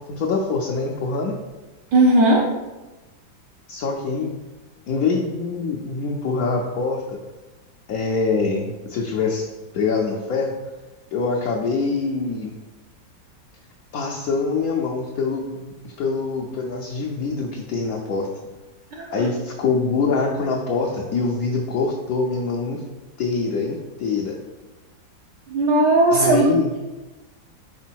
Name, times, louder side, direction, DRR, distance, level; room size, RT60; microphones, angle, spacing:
voice 1, 0.0-1.4 3.7-4.4 4.9-7.2 7.9-9.5 9.7-10.5 11.1-12.5 13.9-18.3 19.1-22.8 23.2-24.4 26.1-26.7, left 4 dB, 65° left, -1 dB, 0.9 m, -24 dB
voice 2, 1.9-2.4 25.5-26.4, right 2 dB, 70° right, -3 dB, 1.4 m, -16 dB
5.1 x 4.3 x 4.5 m, 1.1 s
omnidirectional pair, 2.1 m